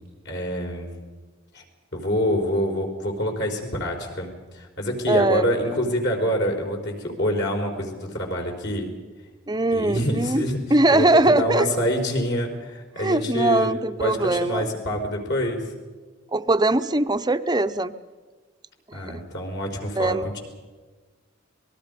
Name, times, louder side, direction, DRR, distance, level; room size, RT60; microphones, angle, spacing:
voice 1, 0.2-0.9 1.5-1.6 1.9-8.9 9.7-10.6 10.9-13.7 14.0-15.7 18.9-20.4, equal, 60° left, 2 dB, 4.4 m, -26 dB
voice 2, 5.1-5.5 9.5-10.4 10.7-11.7 13.0-14.7 16.3-17.9 18.9-19.2 20.0-20.3, right 2 dB, 20° right, 10 dB, 0.7 m, -21 dB
26.0 x 20.5 x 5.2 m, 1.3 s
head